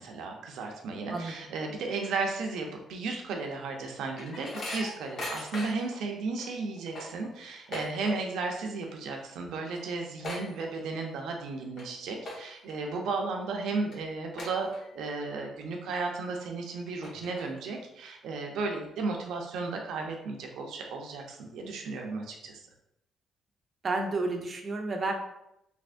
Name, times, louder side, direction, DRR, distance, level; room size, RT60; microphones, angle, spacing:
voice 1, 0.0-22.6, right 3 dB, 80° right, 2 dB, 0.6 m, -34 dB
sound 1, 3.5-6.0 6.4-6.5 6.8-8.5 8.7-9.1 9.4-9.5 9.7-11.1 11.6-11.8 12.2-12.7 13.2-13.3 13.9-14.0 14.4-15.1 15.5-15.6 16.4-16.5 16.8-17.7, left 1 dB, 60° left, 1.1 m, -40 dB
voice 2, 23.8-25.1, right 3 dB, 40° right, 3 dB, 0.6 m, -30 dB
3.4 x 3.3 x 2.5 m, 0.82 s
cardioid pair, 90°, 0 cm